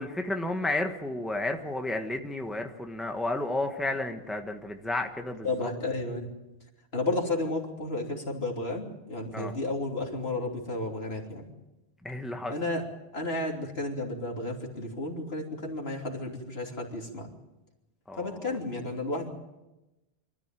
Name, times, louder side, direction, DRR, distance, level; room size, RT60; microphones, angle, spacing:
voice 1, 0.0-5.7 9.3-9.5 12.0-12.5 18.1-18.5, left 2 dB, ahead, 4 dB, 1.4 m, -32 dB
voice 2, 5.4-6.3 6.9-11.5 12.5-12.9 13.1-17.3 18.2-19.3, left 2 dB, 75° left, 0 dB, 3.4 m, -32 dB
25.0 x 13.5 x 9.1 m, 1.0 s
omnidirectional pair, 1.0 m